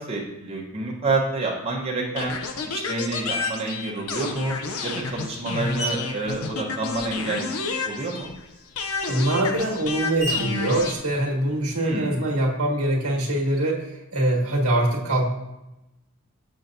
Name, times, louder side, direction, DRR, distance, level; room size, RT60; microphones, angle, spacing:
voice 1, 0.0-2.3 2.7-4.5 4.8-7.5 7.8-8.3 11.8-12.2, right 3 dB, 30° right, -3 dB, 0.9 m, -28 dB
sound 1, 2.2-8.4 8.8-11.0, left 4 dB, 75° left, 0.6 m, -30 dB
Screech, 3.4-3.9 4.6-7.3 7.6-11.9, equal, 60° left, 1.8 m, -37 dB
voice 2, 9.1-15.3, right 1 dB, 85° right, -1 dB, 1.3 m, -23 dB
6.9 x 5.8 x 2.6 m, 0.94 s
head